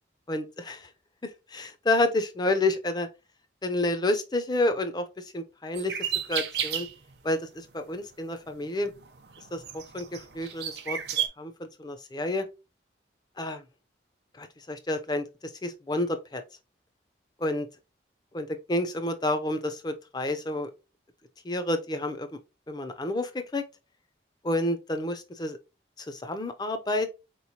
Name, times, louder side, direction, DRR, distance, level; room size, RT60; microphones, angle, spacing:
voice 1, 0.3-0.9 1.2-3.1 3.6-6.0 6.3-6.9 7.2-8.9 9.5-11.0 11.4-12.5 13.4-13.6 14.4-15.3 15.6-16.4 17.4-17.7 18.3-20.7 21.4-22.3 22.7-23.6 24.4-25.6 26.0-27.1, left 1 dB, 20° left, 0.4 m, -29 dB
sound 1, 5.7-7.1 7.7-7.9 8.5-11.3, right 9 dB, 65° right, 0.6 m, -33 dB
4.2 x 3.0 x 2.8 m
head